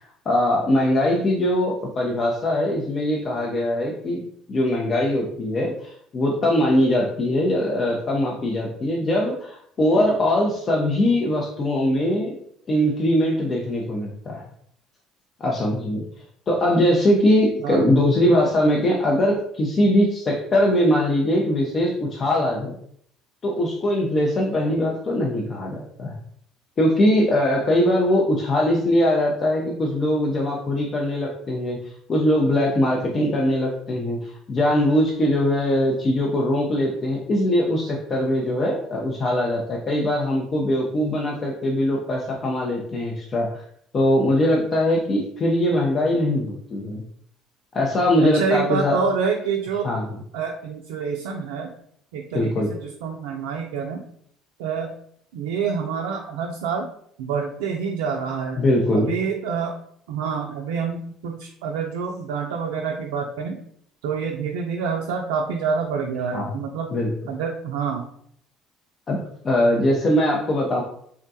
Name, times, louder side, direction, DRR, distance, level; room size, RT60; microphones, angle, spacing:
voice 1, 0.3-4.2 4.5-12.4 12.7-14.4 15.4-16.0 16.5-22.7 23.4-26.1 26.8-31.8 32.1-43.6 43.9-47.0 47.7-49.0 49.8-50.0 52.3-52.7 58.6-59.1 66.3-66.5 66.9-67.1 69.1-69.2 69.4-70.8, left 1 dB, 40° left, -2 dB, 0.6 m, -21 dB
voice 2, 17.6-17.9 48.2-49.9 50.3-51.7 52.1-54.0 54.6-54.9 55.3-56.9 57.2-58.6 58.9-59.7 60.1-63.6 64.0-66.9 67.3-68.0, right 5 dB, 85° right, 1 dB, 0.3 m, -27 dB
3.6 x 2.2 x 2.7 m, 0.66 s
hypercardioid pair, 70°, 0 cm